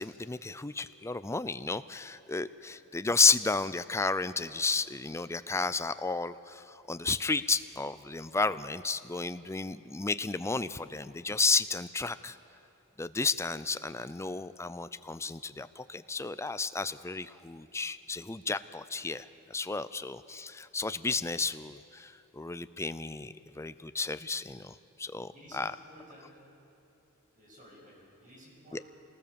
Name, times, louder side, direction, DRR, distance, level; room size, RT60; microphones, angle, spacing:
voice 1, 0.0-12.4 13.0-25.8 28.7-28.8, left 4 dB, 10° left, 13 dB, 0.5 m, -32 dB
voice 2, 25.3-26.3 27.3-28.8, equal, 35° right, -3 dB, 7.3 m, -54 dB
25.5 x 19.5 x 7.1 m, 2.8 s
head